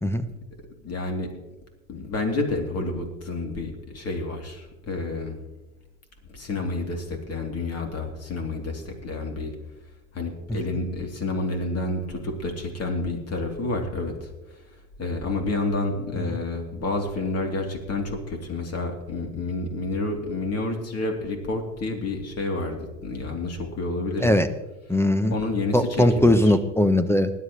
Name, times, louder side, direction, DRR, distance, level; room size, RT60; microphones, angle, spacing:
voice 1, 0.8-1.3 1.9-5.4 6.3-9.5 10.1-14.1 15.0-24.4 25.3-26.5, left 2 dB, 30° left, 3 dB, 2.9 m, -29 dB
voice 2, 24.9-25.3 25.7-27.3, left 1 dB, 5° left, 11 dB, 0.6 m, -20 dB
20.0 x 11.0 x 3.1 m, 1.1 s
hypercardioid pair, 85°, 50 cm